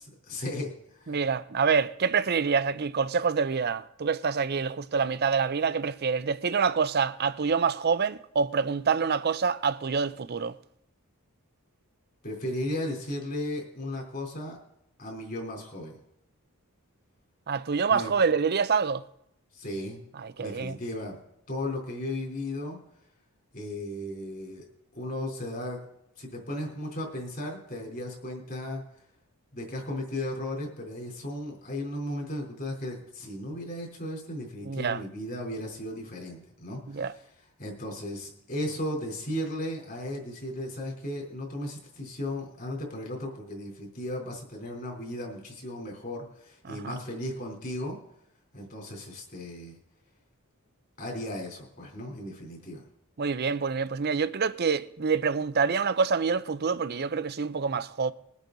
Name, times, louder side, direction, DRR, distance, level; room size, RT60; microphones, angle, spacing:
voice 1, 0.2-1.2 12.2-14.6 15.0-15.9 17.9-18.1 19.5-20.0 20.4-21.2 21.5-22.8 23.5-24.7 24.9-25.8 26.2-28.8 29.5-37.0 37.6-48.0 48.5-49.8 51.0-52.8, left 1 dB, 40° left, 3.6 m, -35 dB
voice 2, 1.1-10.6 17.5-19.0 20.1-20.8 34.6-35.0 36.9-37.1 46.6-47.0 53.2-58.1, right 5 dB, 45° right, 0.5 m, -26 dB
21.5 x 8.3 x 3.9 m
head